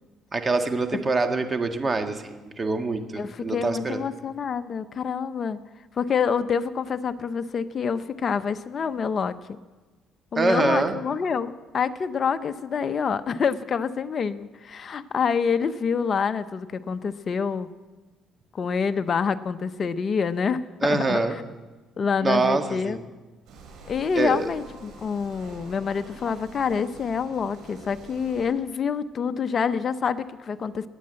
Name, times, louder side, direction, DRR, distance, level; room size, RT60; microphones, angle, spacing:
voice 1, 0.3-4.0 10.3-10.9 20.8-21.4 22.2-23.0 24.1-24.5, right 3 dB, 30° right, 6 dB, 1.6 m, -25 dB
voice 2, 3.2-5.6 6.0-9.4 10.3-17.7 18.5-21.4 22.0-23.0 23.9-30.9, left 6 dB, 40° left, 10 dB, 0.8 m, -27 dB
sound 1, 23.4-28.5, right 2 dB, 75° right, 6.7 m, -46 dB
20.0 x 8.7 x 7.7 m, 1.2 s
cardioid pair, 95°, 0 cm